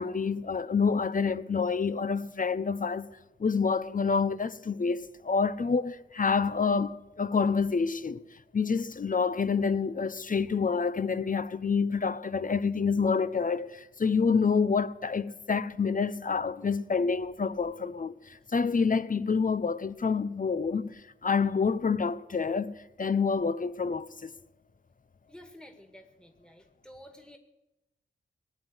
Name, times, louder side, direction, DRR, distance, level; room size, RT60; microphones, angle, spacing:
voice 1, 0.0-3.1 3.4-8.2 8.5-24.3, left 5 dB, 40° left, 0.8 m, -28 dB
voice 2, 25.3-27.4, equal, 5° left, 2.0 m, -51 dB
19.0 x 7.9 x 9.8 m
cardioid pair, 55°, 20 cm